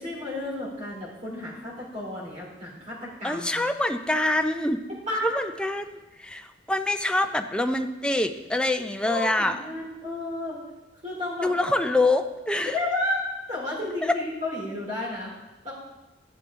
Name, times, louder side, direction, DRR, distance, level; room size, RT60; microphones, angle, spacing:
voice 1, 0.0-3.6 5.1-5.4 9.1-10.6 11.0-11.5 12.6-13.2 13.5-15.3 15.6-15.7, left 1 dB, 40° right, -6 dB, 3.2 m, -32 dB
voice 2, 3.2-4.8 5.2-9.6 11.4-12.7 14.0-14.1, left 2 dB, 5° left, 6 dB, 0.5 m, -25 dB
13.0 x 9.6 x 3.7 m, 1.1 s
head